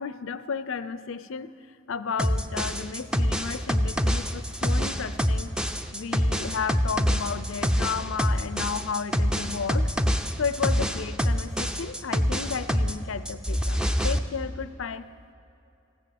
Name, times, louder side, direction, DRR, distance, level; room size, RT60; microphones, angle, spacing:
voice 1, 0.0-1.5 1.9-5.5 5.9-9.9 10.4-15.1, left 5 dB, 75° left, 14 dB, 0.5 m, -33 dB
sound 1, 2.2-13.0 13.3-14.2, equal, 5° right, 0.5 m, -25 dB
15.0 x 10.5 x 7.9 m, 2.9 s
head